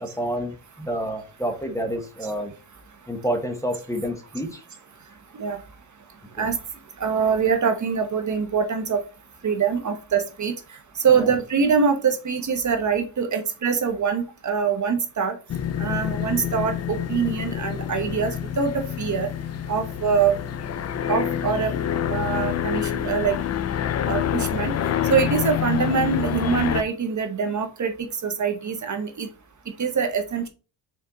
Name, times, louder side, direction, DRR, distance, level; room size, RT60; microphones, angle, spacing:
voice 1, 0.0-2.5 3.1-4.6 6.4-6.5 11.1-11.3, equal, 5° left, 4 dB, 1.1 m, -29 dB
voice 2, 7.0-9.0 9.4-15.4 15.8-19.3 19.7-20.4 21.1-21.7 22.1-23.4 24.0-24.7 25.1-29.3 29.8-30.5, right 6 dB, 40° right, 6 dB, 1.0 m, -24 dB
sound 1, 15.5-26.8, left 9 dB, 35° left, 0.4 m, -27 dB
5.7 x 4.4 x 3.9 m, 0.34 s
cardioid pair, 135°, 45 cm